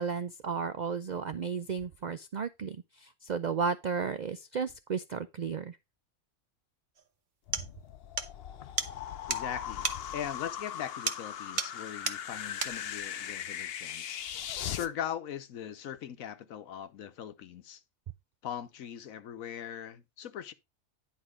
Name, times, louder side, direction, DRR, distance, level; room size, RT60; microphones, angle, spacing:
voice 1, 0.0-2.8 3.0-5.8, right 6 dB, 85° right, 0.4 m, -33 dB
sound 1, 7.0-7.1 7.5-7.7 8.2-8.3 8.8-8.9 9.3-9.5 9.8-10.0 11.1-11.3 11.6-11.8 12.1-12.2 12.6-12.8, right 5 dB, 40° right, 1.0 m, -32 dB
sound 2, 7.5-14.9, left 9 dB, 60° left, 0.7 m, -39 dB
voice 2, 9.3-9.9 10.1-17.8 18.4-20.5, left 9 dB, 80° left, 1.2 m, -40 dB
10.0 x 4.6 x 4.9 m
omnidirectional pair, 1.4 m